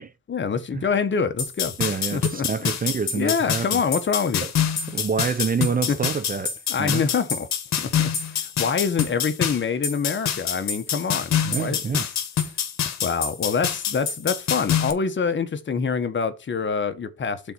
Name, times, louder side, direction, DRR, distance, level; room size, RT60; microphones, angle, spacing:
voice 1, 0.3-1.8 2.1-2.5 3.1-4.5 5.9-6.0 6.7-7.5 7.8-11.8 13.0-17.4, left 5 dB, 40° left, 1.2 m, -25 dB
sound 1, 1.4-14.9, left 8 dB, 65° left, 1.6 m, -26 dB
voice 2, 1.8-3.8 4.4-4.5 4.9-7.0 11.4-12.1, right 5 dB, 30° right, 0.7 m, -27 dB
6.8 x 4.1 x 6.2 m
cardioid pair, 90°, 30 cm